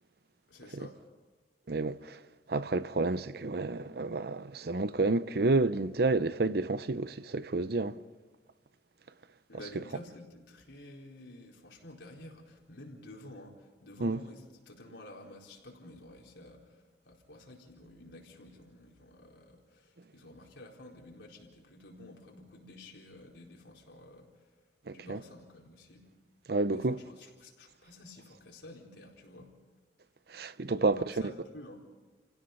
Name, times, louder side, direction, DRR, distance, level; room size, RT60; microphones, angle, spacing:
voice 1, 0.5-1.0 9.5-24.5 24.9-26.0 26.7-29.5 30.8-31.8, left 1 dB, 90° left, 4.3 m, -51 dB
voice 2, 1.7-2.2 2.5-8.0 9.8-9.9 14.0-14.2 24.9-25.2 26.5-27.0 30.3-31.0, right 3 dB, 60° right, 0.7 m, -30 dB
30.0 x 17.0 x 5.5 m
head